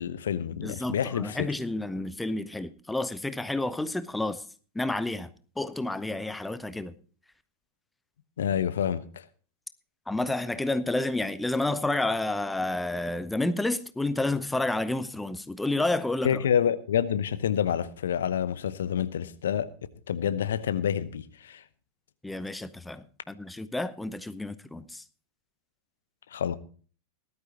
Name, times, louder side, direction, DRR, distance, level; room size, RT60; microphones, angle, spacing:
voice 1, 0.0-1.4 8.4-9.2 16.2-19.7 20.1-21.6 26.3-26.6, left 9 dB, 65° left, 0.9 m, -28 dB
voice 2, 0.6-4.4 4.7-5.3 5.6-6.9 10.1-16.4 22.2-25.0, left 2 dB, 5° left, 0.8 m, -30 dB
18.5 x 12.0 x 2.9 m
figure-of-eight pair, 90°, 0 cm